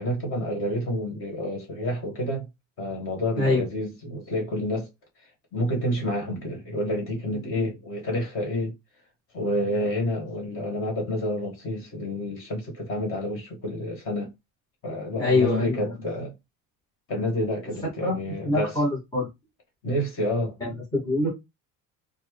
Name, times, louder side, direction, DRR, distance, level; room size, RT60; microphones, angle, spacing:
voice 1, 0.0-2.5 2.8-4.9 5.5-8.7 9.3-14.3 14.8-16.3 17.1-18.8 19.8-20.5, left 1 dB, 40° left, 1.7 m, -29 dB
voice 2, 15.2-15.9 18.0-18.1 18.5-19.3 20.6-21.3, left 2 dB, 10° left, 0.9 m, -24 dB
4.4 x 2.1 x 3.2 m
cardioid pair, 170°, 34 cm